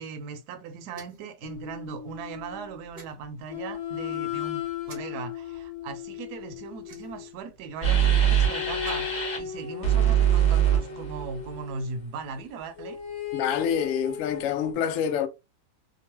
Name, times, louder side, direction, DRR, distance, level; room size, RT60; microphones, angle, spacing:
voice 1, 0.0-13.0, right 5 dB, 75° right, 1.1 m, -38 dB
sound 1, 0.9-1.3 2.9-3.1 4.8-5.0 6.8-7.3 8.6-9.2, right 2 dB, 40° right, 0.7 m, -48 dB
sound 2, 1.4-2.9 3.5-7.4 8.4-12.1 12.8-14.7, left 8 dB, 55° left, 1.1 m, -36 dB
sound 3, 7.8-9.4 9.8-11.5, right 9 dB, 35° left, 0.8 m, -23 dB
voice 2, 13.3-15.3, left 8 dB, 75° left, 0.7 m, -27 dB
2.9 x 2.2 x 2.9 m
omnidirectional pair, 1.8 m